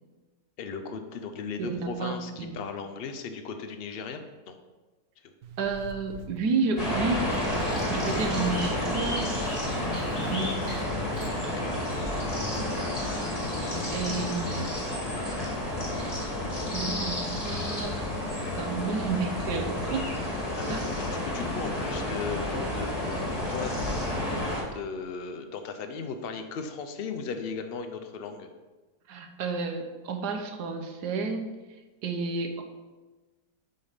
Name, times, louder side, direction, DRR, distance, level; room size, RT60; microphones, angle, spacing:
voice 1, 0.6-4.6 5.2-5.3 11.5-11.7 20.5-23.2 23.5-23.7 24.7-28.5, left 5 dB, 65° left, 7 dB, 0.5 m, -37 dB
voice 2, 1.6-2.5 5.6-7.3 7.9-9.3 10.3-10.6 13.9-14.7 16.4-18.0 18.4-20.1 20.7-20.8 29.1-31.5 32.0-32.6, right 4 dB, 85° right, 5 dB, 1.4 m, -31 dB
Zipper (clothing), 5.4-12.7, right 6 dB, 70° right, 0.9 m, -42 dB
sound 1, 6.8-24.6, left 1 dB, 25° left, 1.5 m, -30 dB
7.6 x 3.5 x 5.6 m, 1.2 s
omnidirectional pair, 1.7 m